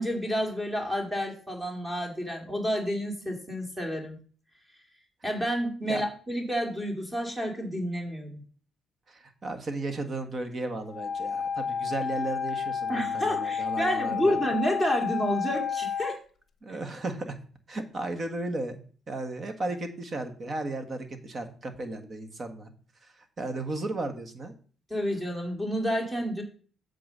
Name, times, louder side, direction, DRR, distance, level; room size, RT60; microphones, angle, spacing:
voice 1, 0.0-4.2 5.2-8.4 12.9-16.2 24.9-26.4, equal, 15° right, 2 dB, 2.2 m, -29 dB
voice 2, 9.1-14.4 16.6-17.4 17.7-18.8 19.1-22.7 23.0-24.5, right 2 dB, 40° right, 7 dB, 1.5 m, -35 dB
Wind instrument woodwind instrument, 10.9-16.2, left 7 dB, 45° left, 0.8 m, -31 dB
7.8 x 3.9 x 6.6 m, 0.42 s
cardioid pair, 90°, 0 cm